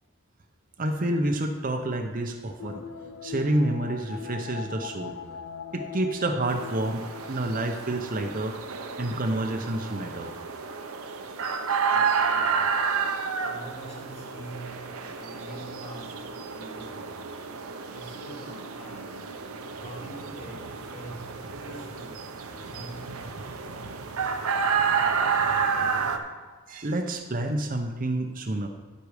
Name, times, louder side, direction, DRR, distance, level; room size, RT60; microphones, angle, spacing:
voice 1, 0.8-2.9 3.2-5.1 5.7-8.6 9.0-10.3 26.7-28.7, right 1 dB, 40° right, 4 dB, 0.7 m, -28 dB
sound 1, 2.6-8.5 8.8-8.9, left 7 dB, 70° left, 0.6 m, -41 dB
voice 2, 5.0-5.3 11.9-12.9 13.4-17.3 17.8-19.3 19.8-23.3, right 1 dB, 30° left, -3 dB, 2.2 m, -45 dB
sound 2, 6.5-26.2, right 6 dB, 80° right, 0.9 m, -30 dB
10.5 x 8.1 x 4.9 m, 1.4 s
head